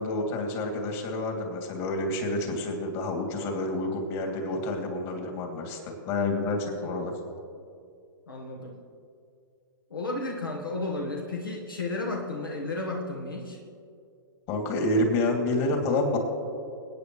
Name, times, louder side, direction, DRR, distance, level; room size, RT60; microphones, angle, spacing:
voice 1, 0.0-7.1 14.5-16.2, left 2 dB, 40° left, 1 dB, 2.8 m, -28 dB
voice 2, 8.3-8.8 9.9-13.6, left 2 dB, 80° left, 0 dB, 1.5 m, -33 dB
26.0 x 9.0 x 3.2 m, 2.3 s
figure-of-eight pair, 115°, 11 cm